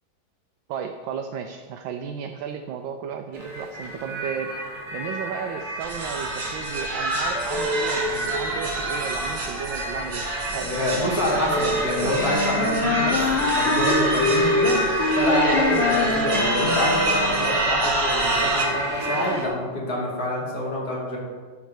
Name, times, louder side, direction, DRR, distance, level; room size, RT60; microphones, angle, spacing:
voice 1, 0.7-4.6 4.9-10.7 11.1-11.5 12.0-12.1, right 7 dB, 80° right, 5 dB, 1.2 m, -34 dB
sound 1, 3.3-19.5, right 1 dB, 20° right, 1.3 m, -29 dB
sound 2, 5.8-18.6, right 2 dB, 40° right, 1.1 m, -28 dB
voice 2, 10.6-14.8 15.1-21.2, left 1 dB, 50° left, -4 dB, 2.4 m, -26 dB
Wind instrument woodwind instrument, 12.0-17.5, left 3 dB, 80° left, 1.6 m, -24 dB
10.5 x 3.8 x 6.4 m, 1.5 s
omnidirectional pair, 2.1 m